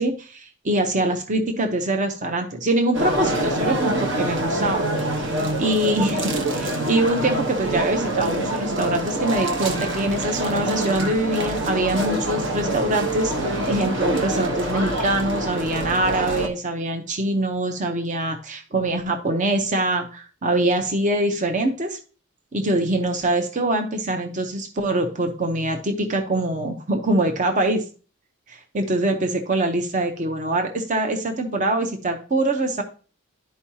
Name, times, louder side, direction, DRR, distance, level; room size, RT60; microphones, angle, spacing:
voice 1, 0.0-4.9 5.2-5.3 5.6-22.0 22.5-27.8 28.5-32.8, right 1 dB, 35° right, 5 dB, 0.7 m, -24 dB
sound 1, 2.9-16.5, right 1 dB, 60° right, 1.1 m, -25 dB
11.0 x 4.6 x 2.8 m, 0.38 s
head